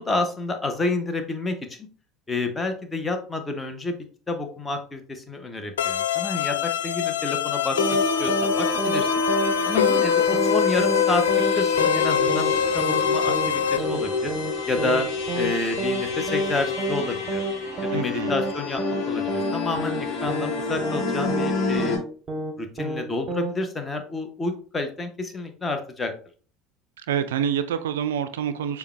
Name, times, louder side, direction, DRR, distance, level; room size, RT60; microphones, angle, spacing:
voice 1, 0.0-1.6 2.3-4.0 4.3-9.1 9.6-11.2 11.6-14.3 14.7-15.1 15.3-17.4 17.8-22.0 22.6-26.1, left 2 dB, 20° left, 5 dB, 0.9 m, -29 dB
sound 1, 5.8-13.8, left 8 dB, 75° left, 0.4 m, -24 dB
sound 2, 7.7-22.0, left 3 dB, 50° left, 1.2 m, -28 dB
sound 3, 7.8-8.0 8.3-8.5 8.8-9.0 9.3-9.5 9.8-10.0 10.3-10.5 10.8-11.0 11.3-11.5 11.8-12.0 12.3-12.5 12.8-13.0 13.3-13.5 13.8-14.0 14.3-14.5 14.8-15.0 15.3-15.5 15.8-16.0 16.3-16.5 16.8-17.0 17.3-17.5 17.8-18.0 18.3-18.5 18.8-19.0 19.3-19.5 19.8-20.0 20.3-20.5 20.8-21.0 21.3-21.5 21.8-22.0 22.3-22.5 22.8-23.0 23.3-23.5, right 2 dB, 35° right, 0.8 m, -29 dB
voice 2, 17.9-18.4 27.1-28.8, right 8 dB, 70° right, 11 dB, 0.3 m, -27 dB
6.8 x 2.3 x 3.3 m, 0.41 s
figure-of-eight pair, 65°, 0 cm